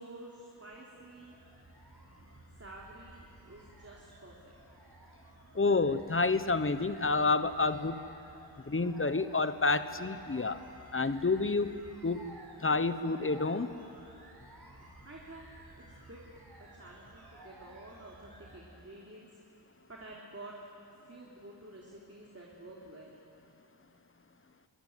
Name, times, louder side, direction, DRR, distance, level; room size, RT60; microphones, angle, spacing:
voice 1, 0.0-1.3 2.6-4.5 15.0-15.5 15.7-16.2 16.6-19.3 19.9-20.5 21.0-23.2, right 2 dB, 30° right, -3 dB, 3.4 m, -50 dB
sound 1, 0.9-18.6, right 1 dB, 55° right, 6.9 m, -55 dB
voice 2, 5.5-8.0 8.7-10.6 10.9-13.7, left 3 dB, 30° left, 12 dB, 1.1 m, -29 dB
23.0 x 18.5 x 9.4 m, 2.8 s
cardioid pair, 50°, 45 cm